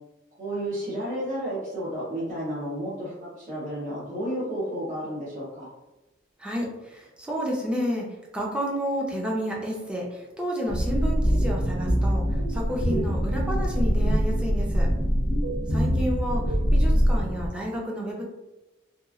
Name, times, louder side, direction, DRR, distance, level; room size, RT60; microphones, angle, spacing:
voice 1, 0.4-5.7 15.8-16.0, equal, 45° right, -8 dB, 0.8 m, -32 dB
voice 2, 6.4-8.1 8.3-12.2 12.5-14.9 15.7-18.2, equal, 5° right, -3 dB, 0.5 m, -30 dB
sound 1, 10.7-17.5, equal, 75° right, 0.7 m, -23 dB
2.9 x 2.3 x 2.4 m, 1.0 s
head